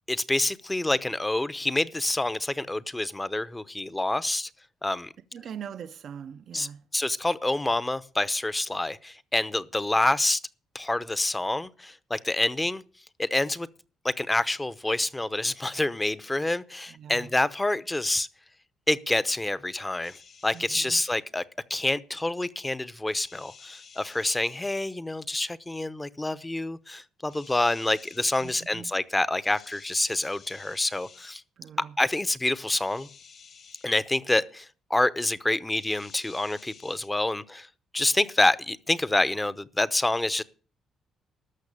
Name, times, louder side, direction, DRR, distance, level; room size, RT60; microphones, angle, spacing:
voice 1, 0.1-4.5 4.8-5.1 6.5-10.4 10.7-12.8 13.2-13.7 14.0-18.3 18.9-20.1 20.4-21.4 21.7-31.4 32.0-33.1 33.8-37.7 37.9-40.4, left 2 dB, 15° left, 0.8 m, -27 dB
voice 2, 5.3-6.8 16.9-17.3 20.5-21.0 28.4-28.9 31.6-32.0, right 8 dB, 65° right, 0.6 m, -42 dB
sound 1, 20.0-20.8 23.1-24.6 27.3-28.7 29.4-31.4 32.8-33.9 35.7-37.1, left 6 dB, 55° left, 2.2 m, -51 dB
13.0 x 5.9 x 8.6 m
cardioid pair, 90°, 0 cm